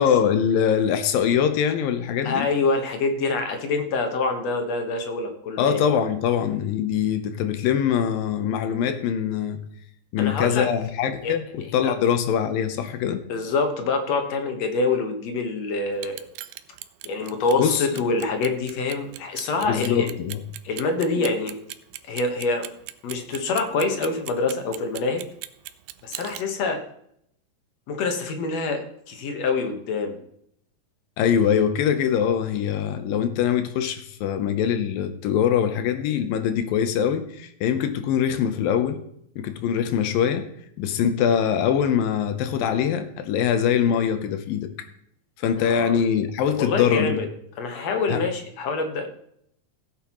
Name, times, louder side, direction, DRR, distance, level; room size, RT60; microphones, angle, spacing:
voice 1, 0.0-2.5 5.6-9.6 10.1-13.2 17.6-17.9 19.7-20.4 31.2-39.0 39.4-40.5 40.8-44.7 45.4-47.2 48.1-48.3, left 8 dB, 80° left, 9 dB, 2.7 m, -23 dB
voice 2, 2.2-5.8 10.2-10.7 11.2-11.4 11.8-11.9 13.3-16.2 17.0-20.1 20.6-21.6 22.1-22.7 23.0-25.2 26.0-26.8 27.9-30.2 45.6-46.0 46.5-47.3 47.6-49.1, left 3 dB, 55° left, 5 dB, 2.2 m, -26 dB
Clock, 15.9-26.4, right 15 dB, 80° right, 1.9 m, -37 dB
16.0 x 8.8 x 3.1 m, 0.71 s
omnidirectional pair, 4.0 m